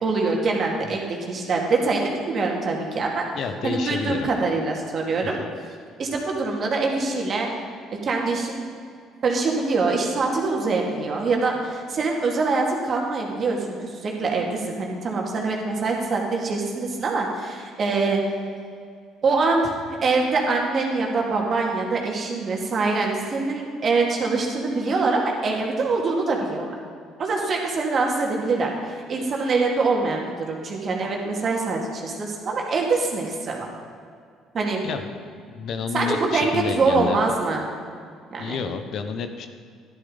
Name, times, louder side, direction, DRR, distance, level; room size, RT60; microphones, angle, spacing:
voice 1, 0.0-3.2 3.6-5.4 6.0-7.5 8.0-8.6 9.2-18.2 19.2-19.7 20.0-26.7 27.2-33.7 34.5-34.8 35.9-37.6 38.3-38.6, right 3 dB, 50° right, 0 dB, 2.3 m, -24 dB
voice 2, 3.3-4.3 5.4-5.5 34.8-35.0 35.3-37.2 38.4-39.5, left 6 dB, 60° left, 8 dB, 0.9 m, -30 dB
11.5 x 11.5 x 4.0 m, 2.2 s
hypercardioid pair, 60°, 0 cm